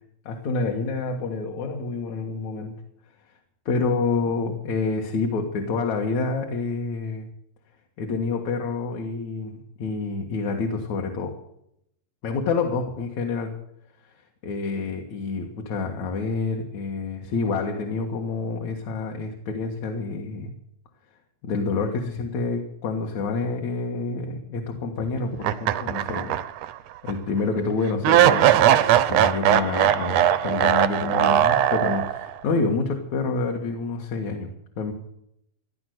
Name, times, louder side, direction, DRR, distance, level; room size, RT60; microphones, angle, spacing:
voice 1, 0.3-2.8 3.7-7.3 8.0-11.4 12.2-13.5 14.4-20.5 21.4-26.4 27.0-34.5 34.8-34.9, left 4 dB, 60° left, 1 dB, 2.7 m, -28 dB
sound 1, 25.4-26.7 27.1-27.2 28.0-32.3, right 11 dB, 75° right, 1.5 m, -19 dB
16.5 x 11.0 x 7.9 m, 0.75 s
omnidirectional pair, 4.0 m